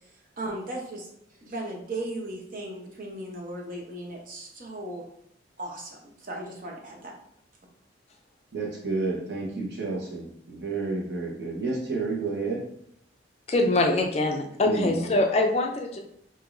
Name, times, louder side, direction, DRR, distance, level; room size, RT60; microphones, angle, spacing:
voice 1, 0.4-1.1 1.4-5.0 5.6-7.1, right 1 dB, 50° right, 0 dB, 0.8 m, -36 dB
voice 2, 8.5-12.6 14.6-15.1, right 3 dB, 70° right, -2 dB, 1.0 m, -30 dB
voice 3, 13.5-16.0, left 2 dB, 35° left, 3 dB, 0.4 m, -24 dB
4.9 x 2.7 x 2.5 m, 0.70 s
head